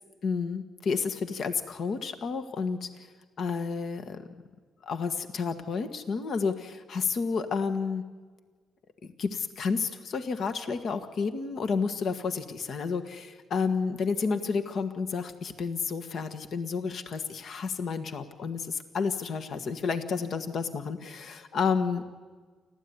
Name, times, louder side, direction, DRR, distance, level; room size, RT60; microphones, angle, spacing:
voice 1, 0.2-3.0 3.4-4.2 4.8-8.0 9.2-22.0, left 5 dB, 60° left, 8 dB, 1.6 m, -30 dB
29.0 x 13.0 x 9.7 m, 1.5 s
cardioid pair, 90°, 0 cm